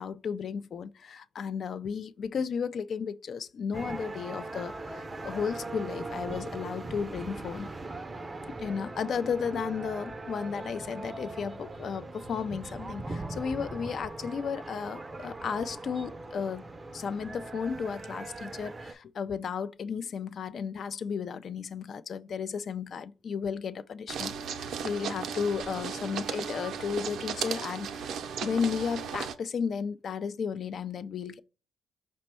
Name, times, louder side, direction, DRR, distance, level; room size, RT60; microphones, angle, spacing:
voice 1, 0.0-7.7 8.6-31.4, left 6 dB, 55° left, 0.4 m, -34 dB
sound 1, 3.7-18.9, right 2 dB, 25° right, 0.5 m, -40 dB
sound 2, 24.1-29.3, right 7 dB, 75° right, 0.5 m, -35 dB
5.1 x 2.2 x 4.2 m
cardioid pair, 90°, 0 cm